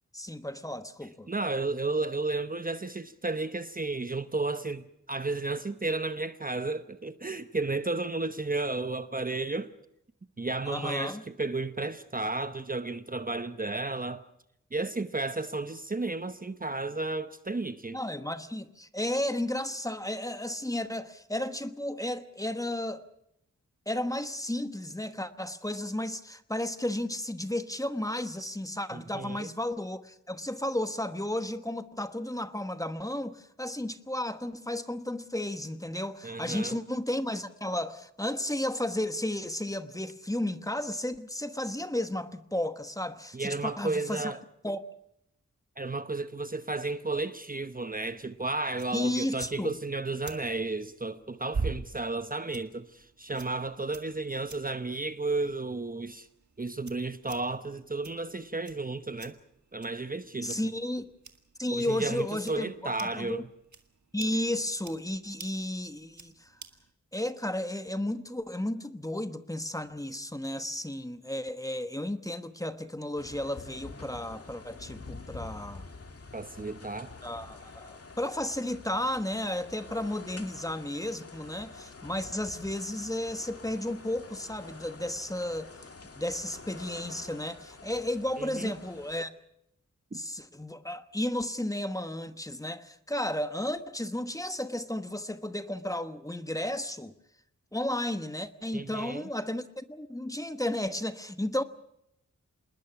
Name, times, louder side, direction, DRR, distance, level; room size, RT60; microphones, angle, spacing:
voice 1, 0.1-1.3 10.7-11.2 17.9-23.0 23.9-44.3 44.6-44.8 48.9-49.8 60.4-61.1 61.6-63.4 64.1-66.5 67.1-75.8 77.2-85.7 86.2-89.3 90.1-97.1 97.7-101.6, left 1 dB, 10° left, 1.2 m, -33 dB
voice 2, 1.3-9.7 10.4-14.2 14.7-18.0 28.9-29.5 36.2-36.8 43.3-44.4 45.8-56.3 56.6-59.4 59.7-60.6 61.7-63.5 76.3-77.1 88.4-88.7 98.7-99.3, right 3 dB, 30° right, 0.9 m, -33 dB
sound 1, 47.7-66.9, right 4 dB, 65° right, 1.9 m, -45 dB
sound 2, 73.2-89.2, left 3 dB, 50° left, 2.1 m, -47 dB
27.0 x 20.5 x 6.0 m
wide cardioid pair, 110°, 31 cm